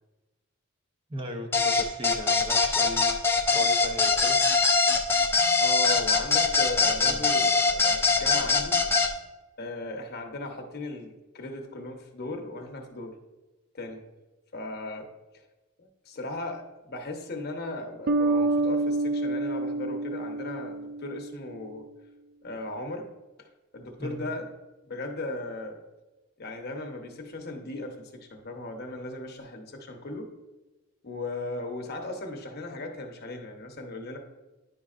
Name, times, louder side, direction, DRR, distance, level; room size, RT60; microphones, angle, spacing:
voice 1, 1.1-3.2 3.5-4.4 4.8-5.0 7.0-7.3 24.0-24.2, left 1 dB, 25° right, 3 dB, 0.7 m, -38 dB
sound 1, 1.5-9.1, left 4 dB, 10° left, 0.6 m, -22 dB
voice 2, 5.6-8.8 9.6-13.2 13.7-14.0 14.5-15.1 15.8-21.9 22.4-23.1 23.4-23.5 23.7-24.5 24.8-25.8 26.4-30.3 31.0-34.2, left 2 dB, 45° left, 3 dB, 0.9 m, -37 dB
sound 2, 18.1-21.4, right 2 dB, 45° right, 0.3 m, -27 dB
10.5 x 5.2 x 2.5 m, 1.1 s
head